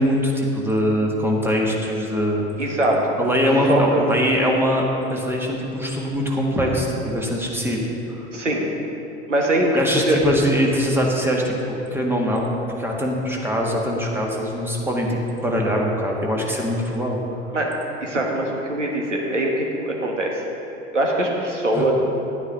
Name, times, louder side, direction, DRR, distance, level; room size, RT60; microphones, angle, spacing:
voice 1, 0.0-2.5 3.2-4.8 5.1-7.9 9.7-17.2 21.7-21.9, equal, 5° right, -1 dB, 1.6 m, -22 dB
voice 2, 2.6-3.2 3.7-4.0 8.3-8.6 9.3-10.2 17.5-17.7 18.0-20.4 20.9-21.9, right 1 dB, 85° right, -1 dB, 1.5 m, -22 dB
11.0 x 9.4 x 3.8 m, 2.9 s
figure-of-eight pair, 75°, 36 cm